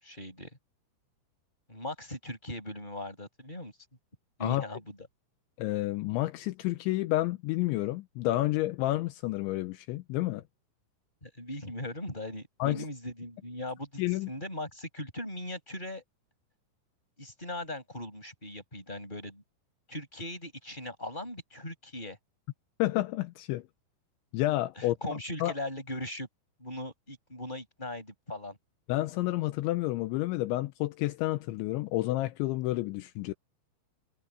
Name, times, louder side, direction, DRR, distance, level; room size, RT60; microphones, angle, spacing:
voice 1, 0.0-0.5 1.7-3.7 4.4-5.1 11.2-16.0 17.2-19.4 19.9-22.2 24.8-26.3 26.6-28.6, left 1 dB, 10° left, 7.2 m, -39 dB
voice 2, 5.6-10.4 12.6-12.9 14.0-14.3 22.8-23.7 24.3-25.5 28.9-33.3, left 17 dB, 80° left, 2.9 m, -30 dB
omnidirectional pair, 5.8 m